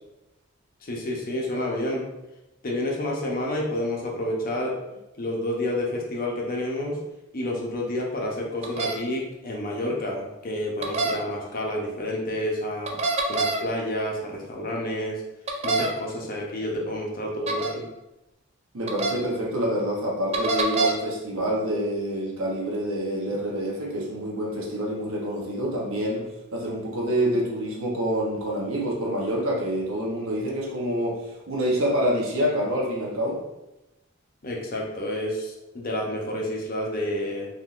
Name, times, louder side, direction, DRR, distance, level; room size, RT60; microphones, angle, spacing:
voice 1, 0.8-2.1 2.6-4.7 5.2-7.0 7.3-13.0 13.3-15.2 15.6-17.9 34.4-37.5, left 1 dB, 45° left, -1 dB, 0.6 m, -29 dB
sound 1, 8.6-8.9 10.8-11.1 12.9-13.6 15.5-15.9 17.5-17.7 18.9-19.1 20.3-20.9, right 3 dB, 30° right, 0.3 m, -25 dB
voice 2, 18.7-33.4, equal, 90° right, -2 dB, 0.9 m, -27 dB
3.6 x 2.6 x 2.4 m, 0.96 s
head